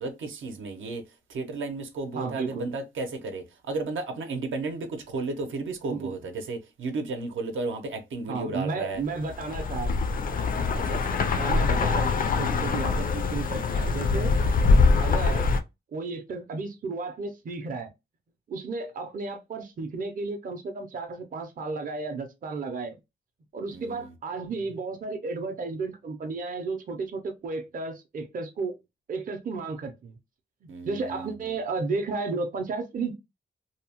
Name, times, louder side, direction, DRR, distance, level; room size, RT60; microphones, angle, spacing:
voice 1, 0.0-1.0 1.3-9.0 10.7-11.2 23.7-24.1 30.7-31.3, right 3 dB, 85° right, 0.6 m, -33 dB
voice 2, 2.1-2.7 5.9-6.2 8.3-10.0 10.8-11.0 11.4-14.3 15.0-15.5 15.9-17.9 18.5-23.0 23.5-28.8 29.1-30.2 30.6-33.1, right 4 dB, 45° right, 0.5 m, -33 dB
sound 1, 9.3-15.6, left 4 dB, 45° left, 0.4 m, -24 dB
2.7 x 2.0 x 2.8 m
wide cardioid pair, 145°, 20 cm